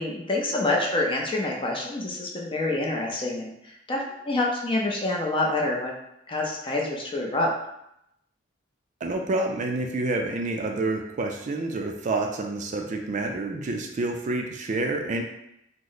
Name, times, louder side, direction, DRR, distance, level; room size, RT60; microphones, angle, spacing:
voice 1, 0.0-3.5 3.9-5.9 6.3-7.5, left 2 dB, 25° left, -1 dB, 0.5 m, -27 dB
voice 2, 9.0-15.2, right 2 dB, 40° right, 3 dB, 0.3 m, -28 dB
3.1 x 2.0 x 3.8 m, 0.80 s
head